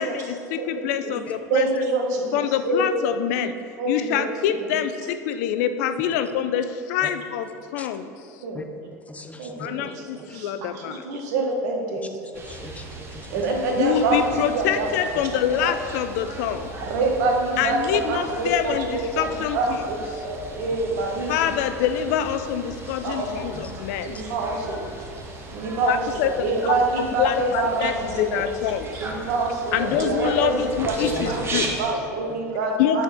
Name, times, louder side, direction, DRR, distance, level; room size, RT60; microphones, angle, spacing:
voice 1, 0.0-1.7 2.3-3.6 3.9-8.1 9.6-11.1 13.8-16.7 17.6-19.8 21.3-24.2 25.9-26.3 27.0-29.1 29.7-31.7 32.8-33.0, left 9 dB, 70° left, 10 dB, 0.4 m, -25 dB
voice 2, 1.5-2.9 3.8-4.3 4.6-4.7 8.4-8.6 9.4-10.0 10.3-12.3 13.3-14.9 15.3-15.7 16.8-21.5 23.0-23.7 24.0-24.9 25.3-28.4 28.9-30.5 30.8-33.0, right 3 dB, 75° right, 1 dB, 1.2 m, -26 dB
voice 3, 9.1-9.7 12.5-13.2 23.6-23.7 25.6-25.7 29.1-29.2 31.0-31.1 32.2-32.3, left 3 dB, 15° left, 7 dB, 0.5 m, -37 dB
sound 1, 12.3-31.7, right 2 dB, 25° right, 1.0 m, -37 dB
8.4 x 4.1 x 3.5 m, 2.4 s
hypercardioid pair, 95°, 9 cm